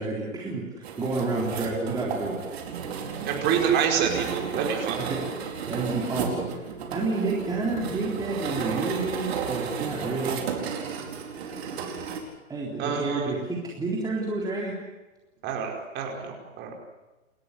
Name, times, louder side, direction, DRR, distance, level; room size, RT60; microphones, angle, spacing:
voice 1, 0.0-2.7 4.9-5.2 5.7-10.4 12.5-14.8, right 3 dB, 10° right, -3 dB, 3.7 m, -30 dB
sound 1, 0.8-12.2, right 6 dB, 50° right, 4.7 m, -33 dB
voice 2, 3.2-5.0 12.8-13.3 15.4-16.7, right 7 dB, 25° right, 1 dB, 5.1 m, -27 dB
29.5 x 13.5 x 9.8 m, 1.1 s
hypercardioid pair, 130°, 40 cm